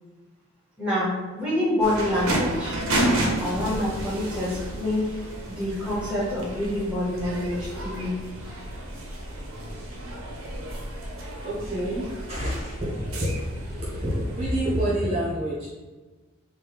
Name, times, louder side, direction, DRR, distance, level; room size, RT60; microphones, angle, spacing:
voice 1, 0.8-2.7 3.4-5.1 5.5-8.1, left 1 dB, 5° right, -7 dB, 0.9 m, -27 dB
sound 1, 1.8-14.9, right 1 dB, 80° right, 0.6 m, -31 dB
voice 2, 11.4-15.7, equal, 30° right, -8 dB, 0.7 m, -28 dB
3.0 x 2.1 x 3.3 m, 1.2 s
head